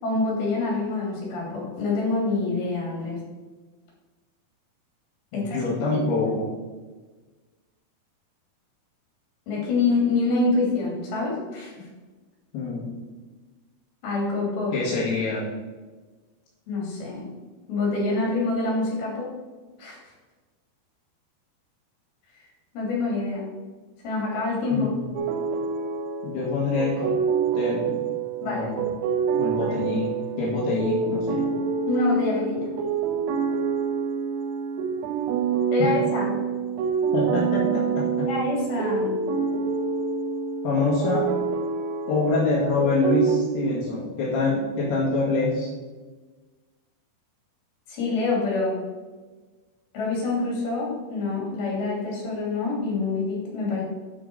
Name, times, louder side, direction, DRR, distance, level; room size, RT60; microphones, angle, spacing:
voice 1, 0.0-3.2 5.3-6.0 9.5-11.9 14.0-14.8 16.7-17.3 17.7-19.3 19.8-20.0 22.7-23.5 24.0-24.9 28.4-28.7 29.6-29.8 31.9-32.7 35.7-36.4 38.2-39.2 47.9-48.8 49.9-53.8, left 3 dB, 70° left, -3 dB, 4.9 m, -26 dB
voice 2, 5.3-6.5 12.5-12.9 14.7-15.5 24.7-25.0 26.2-27.1 27.6-28.8 29.3-30.1 30.4-31.5 35.8-35.9 37.1-38.3 40.6-41.3 42.1-45.7, left 3 dB, 90° left, -7 dB, 4.0 m, -25 dB
sound 1, 25.2-43.4, right 6 dB, 85° right, 2.9 m, -27 dB
9.1 x 6.3 x 5.0 m, 1.3 s
omnidirectional pair, 4.5 m